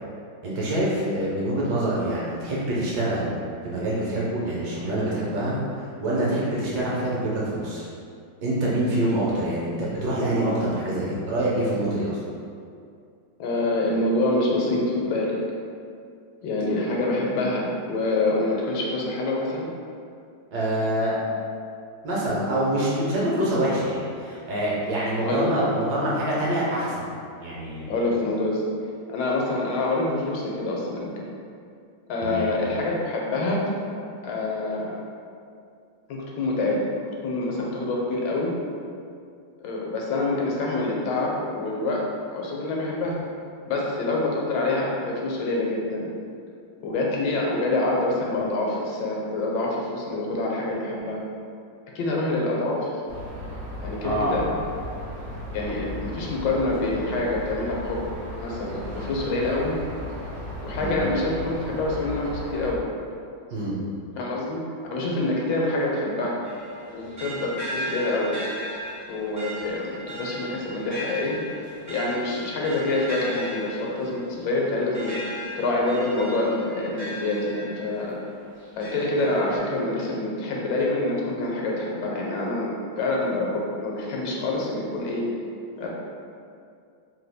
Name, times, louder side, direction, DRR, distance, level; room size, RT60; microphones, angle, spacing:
voice 1, 0.4-3.3 3.6-7.9 8.4-12.2 20.5-21.2 22.0-27.9 32.2-32.5 54.0-54.4 60.7-61.0 63.5-63.8, right 1 dB, 70° right, -6 dB, 1.1 m, -26 dB
voice 2, 13.4-15.3 16.4-19.7 25.2-25.7 27.9-28.6 29.1-31.1 32.1-33.7 34.2-35.0 36.1-36.8 37.2-38.5 39.6-42.0 42.3-43.2 43.7-46.1 46.8-51.2 51.9-52.9 53.8-54.4 55.5-58.1 58.4-59.8 60.6-62.8 64.2-64.6 64.9-66.4 66.9-68.4 69.1-71.4 71.9-75.1 75.6-78.2 78.8-82.7 83.0-85.3 85.8-85.9, left 2 dB, 80° left, -2 dB, 1.3 m, -26 dB
sound 1, 53.1-62.7, left 1 dB, 85° right, 0.5 m, -36 dB
sound 2, 66.4-78.1 78.6-79.6, equal, 20° right, 0.4 m, -37 dB
3.1 x 2.2 x 3.3 m, 2.4 s
omnidirectional pair, 2.1 m